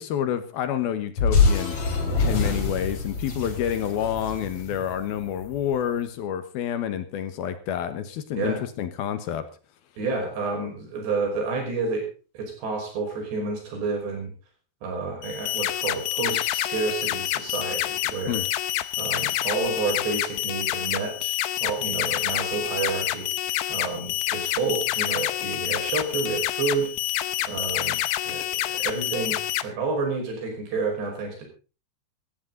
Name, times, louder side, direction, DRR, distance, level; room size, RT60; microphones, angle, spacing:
voice 1, 0.0-1.8 2.2-9.5 18.3-18.5, left 10 dB, 70° left, 11 dB, 2.9 m, -28 dB
sound 1, 1.2-5.6, left 4 dB, 35° left, 3.7 m, -25 dB
voice 2, 10.0-12.1 12.3-14.3 14.8-18.4 19.0-21.3 21.6-26.9 27.5-28.0 28.2-31.5, right 4 dB, 80° right, 2 dB, 7.6 m, -30 dB
sound 2, 15.2-29.6, left 14 dB, 85° left, 3.1 m, -28 dB
17.0 x 14.5 x 4.0 m, 0.33 s
omnidirectional pair, 4.8 m